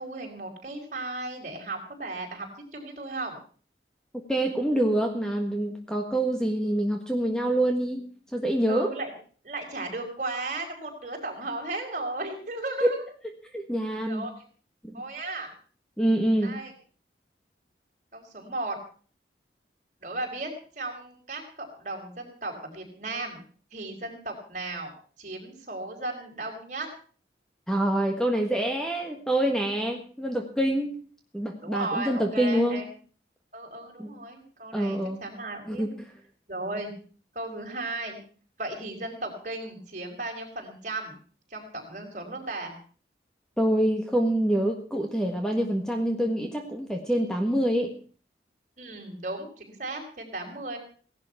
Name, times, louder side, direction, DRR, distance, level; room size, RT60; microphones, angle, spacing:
voice 1, 0.0-2.5 2.7-3.4 8.7-9.1 9.4-13.0 14.0-14.4 14.9-15.5 16.4-16.7 18.1-18.8 20.0-20.5 20.7-23.4 23.7-24.9 25.2-26.9 31.6-32.9 33.5-35.9 36.5-36.9 37.3-38.2 38.6-41.1 41.5-42.7 48.8-50.8, right 2 dB, 45° right, 2 dB, 4.9 m, -35 dB
voice 2, 4.3-8.0 8.3-8.9 13.5-14.3 14.8-15.0 16.0-16.5 27.7-30.9 31.3-32.8 34.0-34.1 34.7-35.2 35.7-35.9 43.6-47.9, right 1 dB, 5° left, 3 dB, 1.6 m, -26 dB
17.5 x 11.5 x 5.8 m, 0.42 s
head